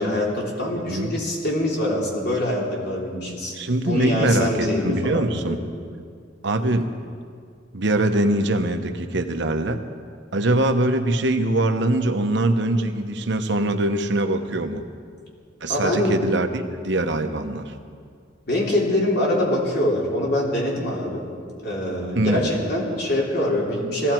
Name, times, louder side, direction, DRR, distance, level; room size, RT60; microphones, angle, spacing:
voice 1, 0.0-3.5 3.8-5.6 15.7-16.2 18.5-21.2 21.6-24.1, left 1 dB, 60° left, -3 dB, 3.4 m, -24 dB
voice 2, 3.5-5.6 6.4-6.9 7.7-9.8 10.3-14.8 15.6-17.7 22.1-22.5, right 1 dB, 65° right, 6 dB, 1.0 m, -23 dB
19.5 x 15.5 x 4.5 m, 2.1 s
head